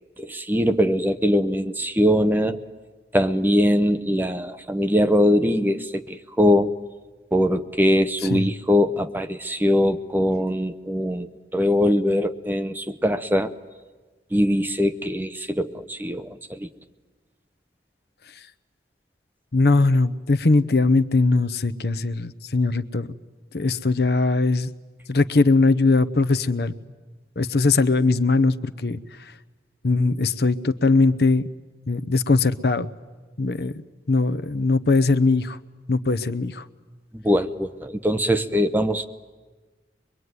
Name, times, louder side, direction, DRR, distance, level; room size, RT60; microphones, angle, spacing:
voice 1, 0.2-2.6 3.1-6.7 7.3-13.5 14.3-16.7 37.1-39.1, equal, 10° right, 9 dB, 0.8 m, -22 dB
voice 2, 19.5-23.1 23.5-24.7 25.1-26.7 27.4-29.0 29.8-31.5 31.9-32.9 33.4-35.6 35.9-36.6, left 3 dB, 60° left, 14 dB, 0.8 m, -20 dB
23.5 x 22.5 x 9.6 m, 1.3 s
head